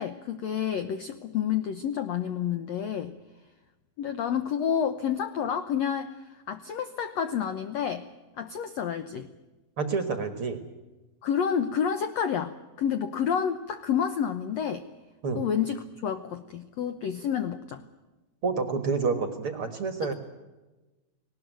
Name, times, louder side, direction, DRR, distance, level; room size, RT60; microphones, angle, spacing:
voice 1, 0.0-3.1 4.0-8.1 8.4-9.3 11.2-14.8 15.3-17.8 20.0-20.1, left 8 dB, 90° left, 10 dB, 1.5 m, -29 dB
voice 2, 9.8-10.7 15.2-15.4 18.4-20.1, right 4 dB, 50° right, 9 dB, 1.8 m, -28 dB
19.5 x 19.0 x 9.2 m, 1.1 s
omnidirectional pair, 4.4 m